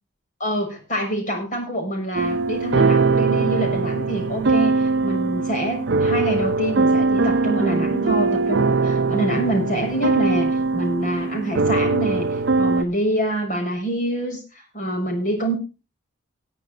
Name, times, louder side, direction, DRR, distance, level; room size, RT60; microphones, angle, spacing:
voice 1, 0.4-15.6, right 1 dB, 40° left, 3 dB, 6.5 m, -26 dB
sound 1, 2.1-12.8, right 3 dB, 65° right, 0.6 m, -21 dB
20.0 x 8.3 x 3.8 m, 0.31 s
head